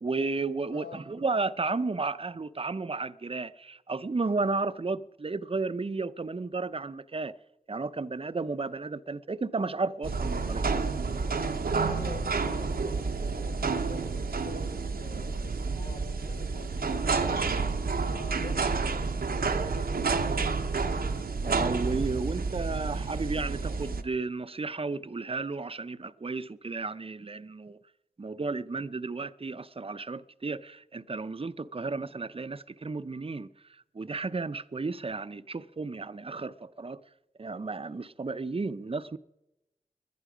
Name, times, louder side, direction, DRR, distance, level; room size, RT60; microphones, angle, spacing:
voice 1, 0.0-7.3 7.7-10.6 12.5-12.6 12.9-13.0 21.4-27.8 28.2-37.0 37.4-39.2, right 3 dB, 40° right, 0.6 m, -33 dB
voice 2, 0.7-1.0 11.8-17.8 18.1-20.6, left 3 dB, 75° left, 1.5 m, -47 dB
sound 1, 10.0-24.0, right 4 dB, 85° right, 0.9 m, -30 dB
20.5 x 11.0 x 5.0 m
cardioid pair, 40°, 15 cm